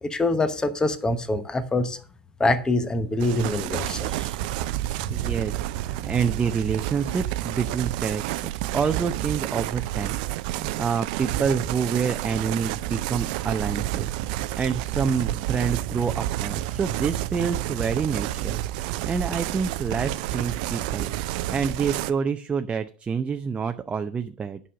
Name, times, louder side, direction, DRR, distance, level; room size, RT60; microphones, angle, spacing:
voice 1, 0.0-2.0 2.4-4.3, left 2 dB, 15° left, 1.0 m, -25 dB
sound 1, 3.2-22.1, right 15 dB, 60° right, 0.6 m, -30 dB
voice 2, 5.1-10.2 10.4-21.1 21.5-24.6, right 6 dB, 20° right, 0.7 m, -28 dB
10.0 x 5.6 x 6.3 m
hypercardioid pair, 80°, 5 cm